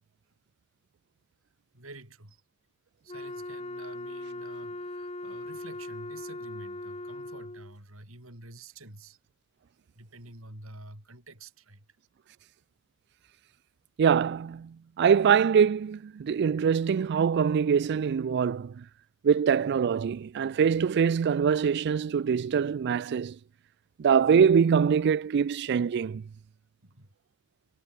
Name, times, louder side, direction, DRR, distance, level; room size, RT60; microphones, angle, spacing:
voice 1, 1.7-2.4 3.0-9.2 9.9-11.9 26.8-27.1, right 2 dB, 85° right, 7.2 m, -49 dB
Wind instrument woodwind instrument, 3.1-7.7, left 1 dB, 30° left, 3.4 m, -39 dB
voice 2, 14.0-18.8 19.2-23.4 24.0-26.2, right 7 dB, 55° right, 0.3 m, -24 dB
head